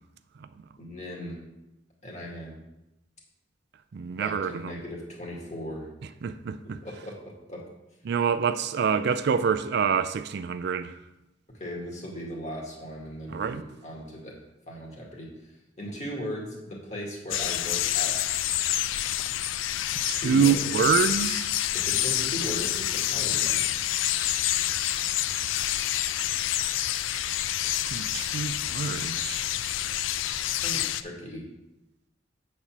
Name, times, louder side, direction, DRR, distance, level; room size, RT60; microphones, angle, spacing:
voice 1, 0.8-1.4 2.0-2.6 4.1-5.9 6.8-7.2 7.5-7.6 11.6-14.3 14.7-15.3 15.8-18.4 20.1-20.6 21.7-23.7 30.5-31.4, equal, 40° left, 2.2 m, -37 dB
voice 2, 3.9-4.8 6.2-6.8 8.1-10.9 13.3-13.6 20.1-21.5 27.9-29.4, right 6 dB, 60° right, 0.4 m, -26 dB
sound 1, 17.3-31.0, left 12 dB, 80° left, 0.4 m, -28 dB
8.2 x 4.3 x 6.0 m
head